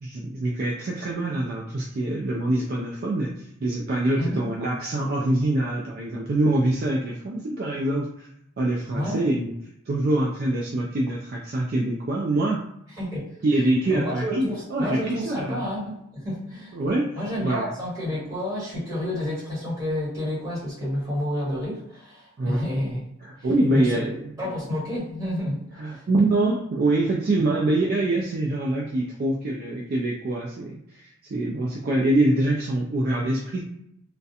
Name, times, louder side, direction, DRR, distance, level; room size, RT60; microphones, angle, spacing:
voice 1, 0.0-8.3 8.6-9.5 9.9-12.6 13.4-15.6 16.7-17.1 17.4-17.7 22.4-22.6 23.2-24.3 25.8-33.6, right 2 dB, 45° right, -2 dB, 0.3 m, -25 dB
voice 2, 13.0-13.4 13.9-16.0 16.2-23.0 23.7-24.0 24.4-25.6 25.8-26.1, left 1 dB, 15° right, -9 dB, 1.4 m, -29 dB
2.4 x 2.1 x 2.7 m, 0.75 s
head